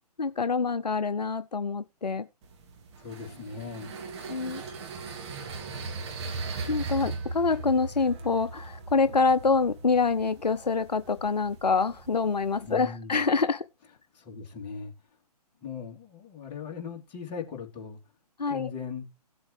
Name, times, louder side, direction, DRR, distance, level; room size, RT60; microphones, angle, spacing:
voice 1, 0.2-2.3 4.3-4.6 6.7-13.7 18.4-18.7, left 4 dB, 85° left, 0.6 m, -26 dB
sound 1, 2.4-12.8, right 4 dB, 40° right, 2.6 m, -39 dB
voice 2, 3.0-4.0 12.7-13.2 14.1-14.9 15.6-18.0 18.5-19.1, left 6 dB, 25° left, 3.3 m, -38 dB
17.0 x 7.8 x 3.3 m
figure-of-eight pair, 130°, 21 cm